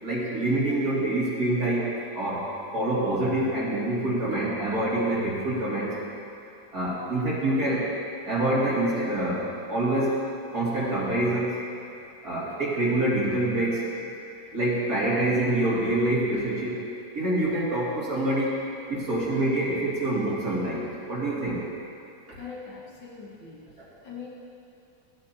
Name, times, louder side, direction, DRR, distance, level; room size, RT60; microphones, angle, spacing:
voice 1, 0.0-1.9 2.1-2.5 2.7-5.9 6.7-7.8 8.3-10.2 10.5-11.6 12.2-13.8 14.5-16.9 17.1-18.5 18.9-21.6 23.8-23.9, right 1 dB, 50° right, -8 dB, 2.9 m, -26 dB
voice 2, 22.3-23.7 24.0-24.3, left 5 dB, 85° left, -4 dB, 2.3 m, -41 dB
15.5 x 8.5 x 2.8 m, 2.8 s
omnidirectional pair, 2.1 m